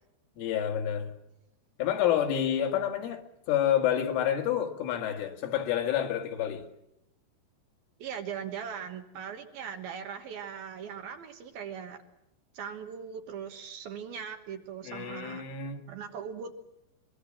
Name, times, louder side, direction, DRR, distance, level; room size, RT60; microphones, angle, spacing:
voice 1, 0.4-1.1 1.8-6.7 14.9-15.9, left 10 dB, 90° left, 4.3 m, -29 dB
voice 2, 8.0-12.0 12.5-15.4 15.9-16.5, right 7 dB, 65° right, 2.7 m, -39 dB
23.0 x 22.0 x 7.5 m
omnidirectional pair, 5.5 m